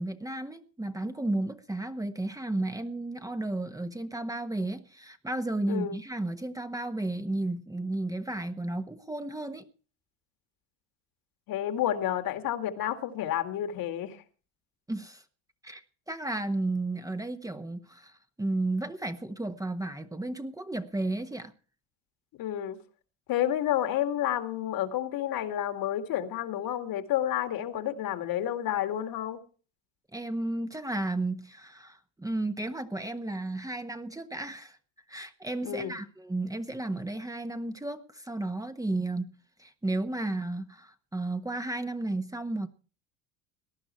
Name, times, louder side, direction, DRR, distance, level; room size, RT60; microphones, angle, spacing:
voice 1, 0.0-9.7 14.9-15.2 15.6-21.5 30.1-34.8 35.1-39.3 39.6-42.7, right 2 dB, 10° right, 1.2 m, -33 dB
voice 2, 11.5-14.2 22.4-22.8 23.3-29.4 35.6-36.0, left 11 dB, 55° left, 2.2 m, -30 dB
18.5 x 11.0 x 4.4 m
supercardioid pair, 95°, 40 cm